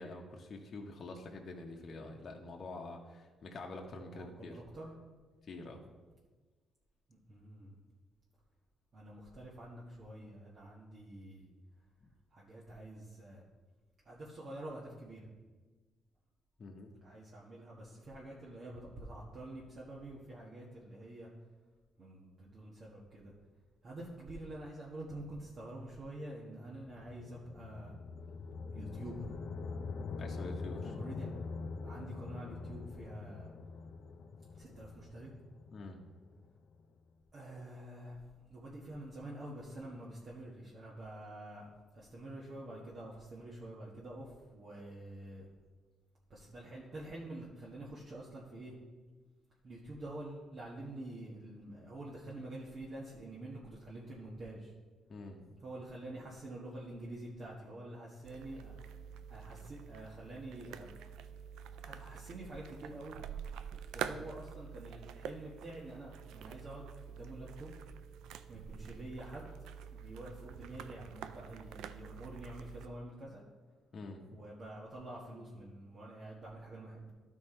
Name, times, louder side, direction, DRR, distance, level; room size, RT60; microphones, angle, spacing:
voice 1, 0.0-4.6 5.4-5.9 16.6-16.9 30.2-30.9 35.7-36.0 55.1-55.4 73.9-74.3, left 2 dB, 45° left, 1 dB, 1.0 m, -46 dB
voice 2, 4.1-4.9 7.1-7.8 8.9-11.5 12.3-13.4 14.0-15.3 17.0-21.3 22.0-23.3 23.8-28.0 28.7-29.2 30.8-31.3 31.8-33.5 34.5-35.3 37.3-38.2 38.5-45.4 46.3-48.7 49.6-54.7 55.6-58.8 59.3-60.9 61.8-63.2 63.9-67.7 68.5-69.5 69.9-73.4 74.3-77.1, right 1 dB, 50° right, -5 dB, 1.5 m, -47 dB
sound 1, 26.5-36.8, left 4 dB, 65° left, 0.5 m, -44 dB
sound 2, 58.2-72.9, right 8 dB, 90° right, 0.4 m, -47 dB
12.0 x 4.5 x 4.4 m, 1.4 s
cardioid pair, 90°, 0 cm